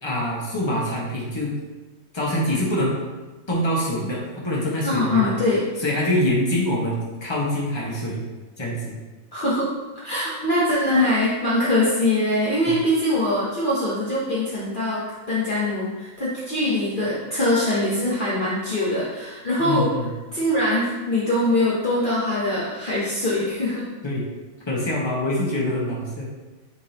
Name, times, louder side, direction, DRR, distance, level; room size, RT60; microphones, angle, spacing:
voice 1, 0.0-1.5 2.1-3.0 3.5-5.3 5.8-8.2 8.6-8.9 12.7-12.8 19.6-20.1 24.0-24.2 24.6-26.3, left 1 dB, 20° left, -5 dB, 1.3 m, -25 dB
voice 2, 4.8-5.6 9.3-9.7 9.9-19.9 20.3-23.9, left 1 dB, 40° left, -8 dB, 1.1 m, -23 dB
8.4 x 3.8 x 2.9 m, 1.2 s
omnidirectional pair, 1.4 m